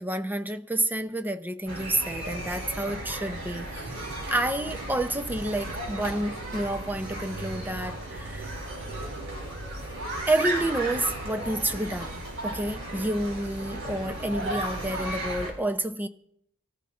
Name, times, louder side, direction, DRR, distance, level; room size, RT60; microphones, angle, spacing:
voice 1, 0.0-3.9 4.3-8.5 10.3-16.1, right 1 dB, 10° right, 0.5 m, -29 dB
sound 1, 1.7-15.5, right 1 dB, 65° right, 4.7 m, -35 dB
24.5 x 14.5 x 2.5 m
head